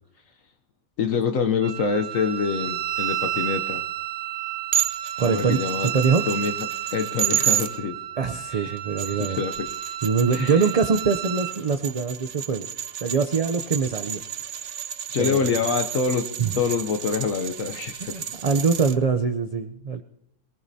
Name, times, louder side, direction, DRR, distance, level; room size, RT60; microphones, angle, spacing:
voice 1, 1.0-3.8 5.2-5.9 6.3-6.5 6.9-8.0 8.5-8.8 9.1-9.7 10.3-10.6 15.1-16.3 16.5-18.2, left 5 dB, 70° left, 5 dB, 1.2 m, -26 dB
Wind instrument woodwind instrument, 1.6-11.6, right 13 dB, 90° right, 1.3 m, -32 dB
sound 1, 4.7-7.7 8.8-19.0, right 11 dB, 60° right, 1.0 m, -31 dB
voice 2, 5.2-6.3 8.2-9.5 10.0-12.7 13.0-14.2 15.2-15.6 16.4-16.6 18.0-20.0, right 5 dB, 45° right, 7 dB, 0.5 m, -23 dB
23.0 x 19.0 x 2.8 m, 0.82 s
omnidirectional pair, 1.5 m